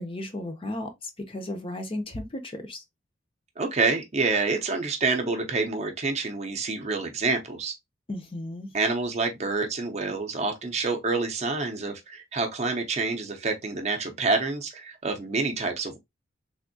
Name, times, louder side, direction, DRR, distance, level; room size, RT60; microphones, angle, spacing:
voice 1, 0.0-2.8 8.1-8.7, left 1 dB, 25° left, 0.5 m, -35 dB
voice 2, 3.6-7.7 8.7-16.0, right 3 dB, 35° right, 0.6 m, -27 dB
3.4 x 2.6 x 2.6 m
head